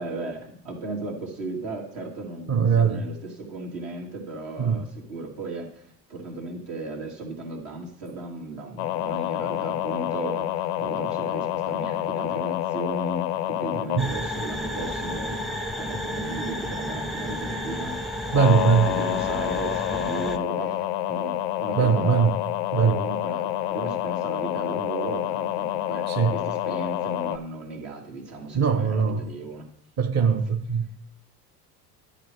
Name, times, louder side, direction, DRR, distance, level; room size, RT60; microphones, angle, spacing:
voice 1, 0.0-15.4 15.8-18.2 18.8-22.3 22.8-26.1 26.3-29.7 30.2-30.4, right 2 dB, 70° right, -2 dB, 2.5 m, -36 dB
voice 2, 2.5-3.0 4.6-4.8 14.0-14.1 18.3-18.9 21.8-22.4 22.7-23.0 26.1-26.3 28.5-29.3 30.0-31.0, right 6 dB, 35° right, 5 dB, 0.7 m, -21 dB
sound 1, 8.8-14.0 18.3-27.4, left 13 dB, 90° left, 0.5 m, -28 dB
sound 2, 14.0-20.4, left 1 dB, ahead, 0.5 m, -32 dB
10.5 x 5.0 x 4.7 m, 0.66 s
hypercardioid pair, 75°, 46 cm